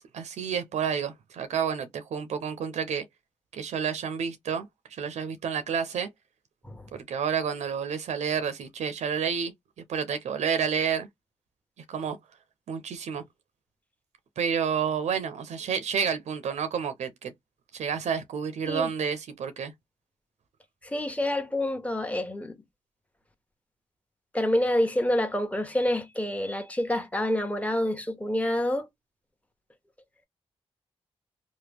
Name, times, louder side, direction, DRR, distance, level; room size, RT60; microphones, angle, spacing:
voice 1, 0.0-3.0 3.5-6.1 6.9-9.5 9.9-11.1 11.9-12.2 12.7-13.2 14.4-17.3 17.7-19.7, right 7 dB, 85° right, 0.5 m, -30 dB
voice 2, 20.8-22.6 24.3-28.9, left 1 dB, 10° left, 1.0 m, -27 dB
2.9 x 2.1 x 3.4 m
cardioid pair, 65°, 11 cm